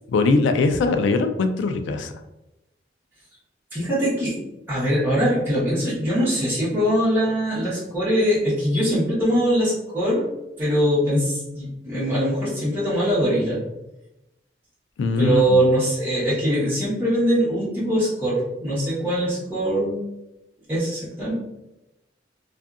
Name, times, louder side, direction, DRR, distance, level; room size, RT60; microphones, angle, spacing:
voice 1, 0.1-2.1 15.0-15.6, left 3 dB, 90° left, 8 dB, 0.3 m, -21 dB
voice 2, 3.7-4.4 4.7-10.3 10.6-13.6 15.2-20.0 20.7-21.4, equal, 10° right, -10 dB, 1.0 m, -22 dB
2.6 x 2.4 x 2.3 m, 0.95 s
head